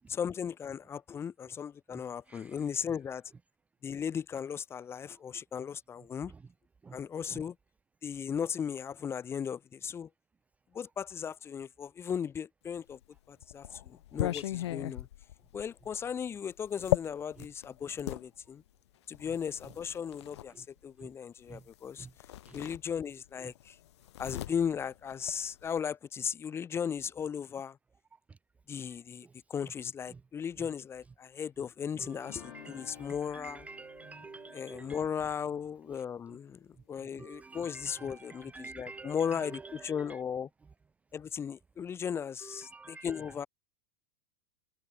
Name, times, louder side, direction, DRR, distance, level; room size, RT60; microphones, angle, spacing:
voice 1, 0.1-3.2 3.8-6.3 6.9-7.5 8.0-10.1 10.7-13.0 13.3-15.1 15.5-18.6 19.1-22.1 22.5-23.8 24.2-27.8 28.7-33.7 34.5-40.5 41.1-43.5, left 7 dB, 15° left, 1.1 m, -36 dB
sound 1, 12.9-18.3 19.1-20.5 21.7-21.9 22.2-23.3 23.6-25.8, left 13 dB, 80° left, 3.2 m, -37 dB
voice 2, 32.0-35.0 37.1-40.2 42.4-43.3, right 4 dB, 10° right, 0.6 m, -48 dB
sound 2, 32.2-37.2, left 19 dB, 60° left, 3.4 m, -55 dB
supercardioid pair, 150°, 14 cm